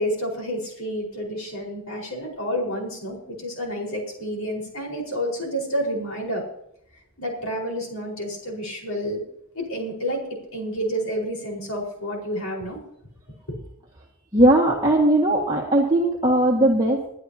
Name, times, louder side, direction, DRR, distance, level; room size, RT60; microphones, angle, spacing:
voice 1, 0.0-6.4 7.2-9.2 9.5-12.8 13.5-13.6, equal, 70° left, 0 dB, 4.8 m, -29 dB
voice 2, 14.3-17.1, right 1 dB, 20° right, -3 dB, 1.8 m, -19 dB
21.5 x 11.0 x 2.9 m, 0.76 s
head